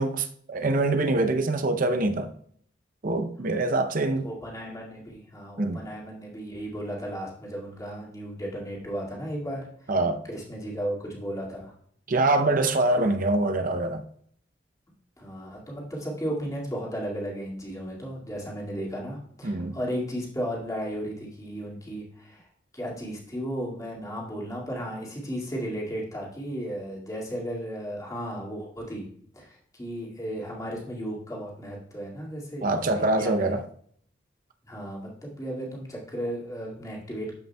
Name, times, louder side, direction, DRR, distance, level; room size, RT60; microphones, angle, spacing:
voice 1, 0.0-2.3 3.0-4.3 5.6-5.9 9.9-10.2 12.1-14.0 19.4-19.8 32.6-33.6, right 2 dB, 50° right, 0.6 m, -24 dB
voice 2, 4.2-9.7 10.3-11.7 12.9-13.0 15.2-22.5 22.7-29.1 29.3-33.5 34.6-37.4, equal, 20° left, 2.1 m, -35 dB
13.0 x 5.4 x 2.2 m
head